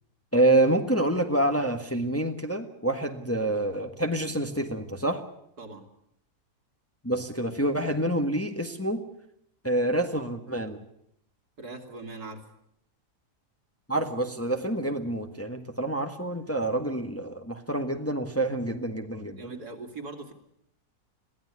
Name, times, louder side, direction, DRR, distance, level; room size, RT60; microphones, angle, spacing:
voice 1, 0.3-5.3 7.0-9.0 9.6-10.8 13.9-19.5, right 1 dB, 10° left, 5 dB, 1.4 m, -27 dB
voice 2, 11.6-12.4 19.1-20.3, right 3 dB, 80° right, 4 dB, 3.2 m, -41 dB
22.0 x 16.5 x 9.7 m, 0.75 s
omnidirectional pair, 1.7 m